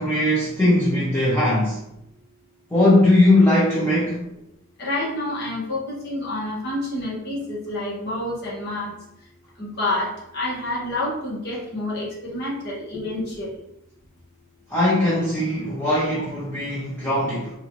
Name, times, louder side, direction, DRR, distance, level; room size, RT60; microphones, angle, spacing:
voice 1, 0.0-1.8 2.7-4.2 14.7-17.5, left 1 dB, 10° left, -8 dB, 0.7 m, -19 dB
voice 2, 4.8-8.9 9.6-13.6 15.1-15.2 16.2-16.3, left 1 dB, 50° left, -6 dB, 1.4 m, -28 dB
4.2 x 2.5 x 3.0 m, 0.81 s
head